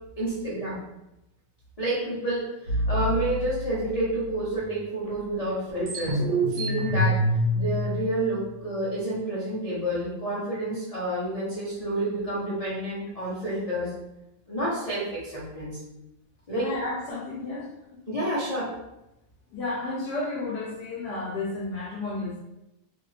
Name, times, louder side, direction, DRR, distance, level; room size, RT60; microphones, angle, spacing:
voice 1, 0.2-0.8 1.8-13.9 14.5-15.8 16.5-16.7 18.1-18.7, right 1 dB, 35° left, -8 dB, 0.5 m, -29 dB
sound 1, 2.7-4.6 5.1-5.2 5.5-9.0, equal, 85° right, 1.3 m, -27 dB
voice 2, 16.5-17.7 19.5-22.4, left 2 dB, 75° left, -5 dB, 1.3 m, -32 dB
3.2 x 2.5 x 3.2 m, 0.92 s
omnidirectional pair, 1.8 m